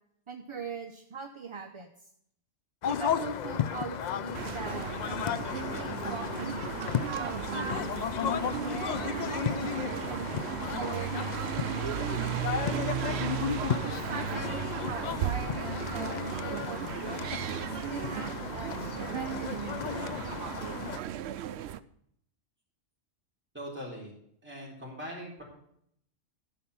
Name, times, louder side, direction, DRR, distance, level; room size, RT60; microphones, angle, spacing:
voice 1, 0.3-2.1 2.9-6.6 7.2-10.3 10.8-12.9 13.8-17.2 17.9-20.3, right 5 dB, 30° right, 4 dB, 0.7 m, -41 dB
sound 1, 2.8-21.0, left 8 dB, 60° left, 0.4 m, -34 dB
sound 2, 4.3-21.8, right 10 dB, 70° right, 0.8 m, -35 dB
voice 2, 23.5-24.1 24.4-25.4, equal, 10° right, -5 dB, 4.2 m, -41 dB
13.0 x 5.7 x 6.8 m, 0.70 s
omnidirectional pair, 1.2 m